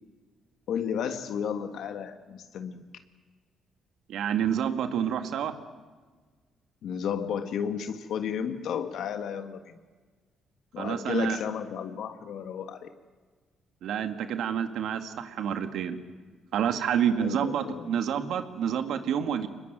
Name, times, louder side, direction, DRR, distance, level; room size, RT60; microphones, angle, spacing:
voice 1, 0.7-2.8 6.8-9.8 10.7-12.9 17.2-17.9, left 7 dB, 75° left, 8 dB, 1.6 m, -33 dB
voice 2, 4.1-5.6 10.8-11.4 13.8-16.0 16.5-19.5, right 8 dB, 75° right, 8 dB, 1.9 m, -28 dB
24.0 x 21.0 x 9.2 m, 1.4 s
cardioid pair, 90°, 0 cm